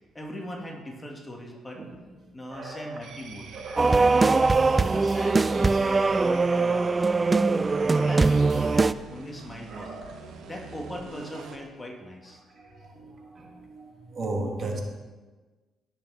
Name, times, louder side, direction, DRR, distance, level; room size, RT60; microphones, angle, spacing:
voice 1, 0.1-1.9 2.3-3.5 4.0-7.2 7.6-9.9 10.4-12.4, left 1 dB, 15° left, 1.9 m, -40 dB
voice 2, 2.2-3.0 3.5-4.0 9.7-10.2 12.5-14.8, right 2 dB, 45° right, 1.8 m, -36 dB
sound 1, 3.0-11.6, right 5 dB, 75° right, 1.2 m, -45 dB
sound 2, 3.8-8.9, right 3 dB, 20° right, 0.3 m, -21 dB
16.5 x 6.9 x 4.2 m
cardioid pair, 110°, 0 cm